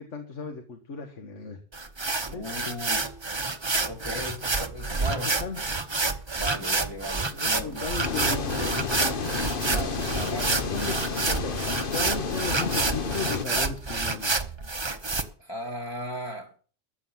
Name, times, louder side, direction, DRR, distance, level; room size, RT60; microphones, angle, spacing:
voice 1, 0.0-1.6 2.2-2.5 4.1-4.2 5.0-5.6 7.3-9.1 10.3-11.6 11.9-14.4, left 5 dB, 65° left, 5 dB, 1.8 m, -36 dB
sound 1, 1.7-15.2, right 3 dB, 20° right, 1.0 m, -28 dB
voice 2, 2.3-3.2 3.6-5.3 6.3-7.9 9.7-11.0 15.4-16.5, left 1 dB, 20° left, 0 dB, 1.7 m, -37 dB
sound 2, 8.0-13.4, left 5 dB, 45° left, 1.2 m, -31 dB
14.0 x 8.1 x 7.2 m, 0.41 s
omnidirectional pair, 1.4 m